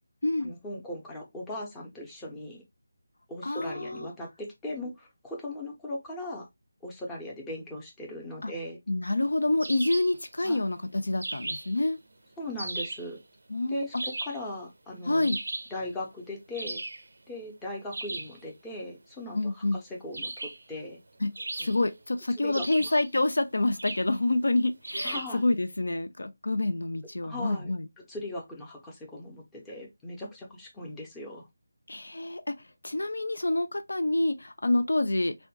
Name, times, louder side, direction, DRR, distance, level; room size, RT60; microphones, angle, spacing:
voice 1, 0.4-2.6 3.3-6.5 6.8-8.8 10.4-10.6 12.4-13.2 13.7-15.4 15.7-16.8 17.3-21.0 21.6-21.8 22.4-23.0 25.0-25.4 27.2-31.5, left 1 dB, 10° left, 0.6 m, -39 dB
voice 2, 3.4-4.1 8.4-8.5 8.9-10.8 11.0-12.0 13.5-13.8 15.0-15.4 19.3-19.8 21.2-21.3 21.6-27.8 31.9-32.6 32.8-35.4, left 2 dB, 70° left, 0.3 m, -27 dB
sound 1, 9.6-10.2 11.2-11.8 12.6-13.1 14.0-14.5 15.2-15.8 16.5-17.1 17.9-18.4 20.1-20.7 21.4-22.0 22.5-23.1 23.8-24.1 24.8-25.4, right 2 dB, 65° right, 0.4 m, -36 dB
3.4 x 2.2 x 2.6 m
figure-of-eight pair, 160°, 0 cm